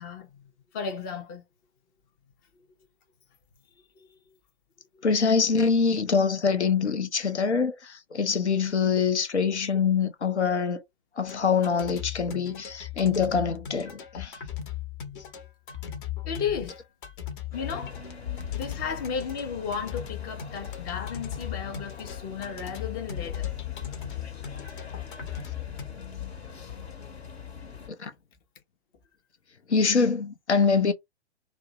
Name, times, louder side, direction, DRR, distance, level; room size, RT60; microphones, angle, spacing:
voice 1, 0.0-1.4 4.0-4.3 4.9-5.0 15.2-15.3 16.2-16.8 17.5-18.0 18.5-23.5, left 6 dB, 20° left, 0.4 m, -34 dB
voice 2, 5.0-10.8 11.2-14.4 28.0-28.1 29.7-30.9, left 5 dB, 90° left, 0.6 m, -24 dB
sound 1, 11.3-25.9, left 9 dB, 50° left, 0.8 m, -39 dB
sound 2, 17.5-27.9, left 9 dB, 70° left, 1.0 m, -39 dB
2.5 x 2.0 x 2.8 m
figure-of-eight pair, 115°, 33 cm